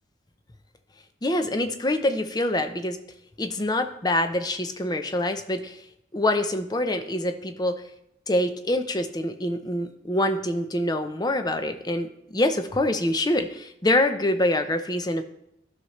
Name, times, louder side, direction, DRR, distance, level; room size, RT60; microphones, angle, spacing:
voice 1, 1.2-3.0 3.4-5.8 6.1-7.8 8.3-15.2, left 1 dB, 20° left, 8 dB, 0.6 m, -25 dB
13.0 x 5.8 x 3.1 m, 0.80 s
head